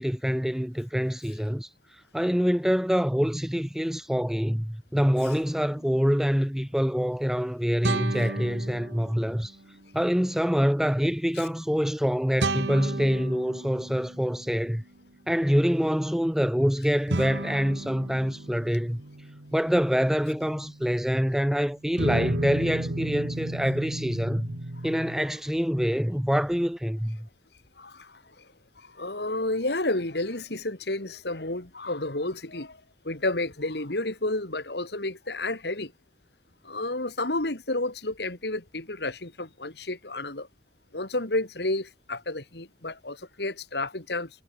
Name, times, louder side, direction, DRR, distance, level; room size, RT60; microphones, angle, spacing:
voice 1, 0.0-1.7 2.1-9.6 9.9-14.8 15.3-19.0 19.5-24.6 24.8-27.3, equal, ahead, 0.6 m, -25 dB
sound 1, 7.8-9.5 12.4-14.8 17.1-21.4 22.0-25.2, right 2 dB, 70° right, 1.8 m, -34 dB
voice 2, 27.8-28.2 28.8-32.8 33.0-35.9 36.6-40.5 40.9-44.3, left 2 dB, 60° left, 2.7 m, -31 dB
head